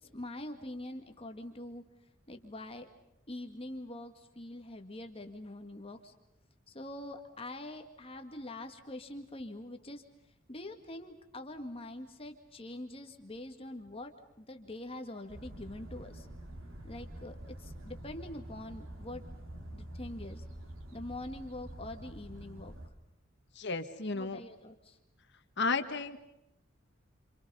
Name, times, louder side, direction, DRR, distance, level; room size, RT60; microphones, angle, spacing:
voice 1, 0.0-1.8 2.3-2.9 3.3-6.1 6.7-10.0 10.5-16.3 16.8-19.2 19.7-20.4 20.9-22.7 24.1-25.0, left 1 dB, 30° left, 5 dB, 1.9 m, -44 dB
sound 1, 15.3-22.9, right 1 dB, 80° right, 3.3 m, -47 dB
voice 2, 23.6-24.4 25.6-26.2, left 4 dB, 60° left, 7 dB, 1.9 m, -33 dB
29.0 x 27.5 x 5.6 m, 0.89 s
head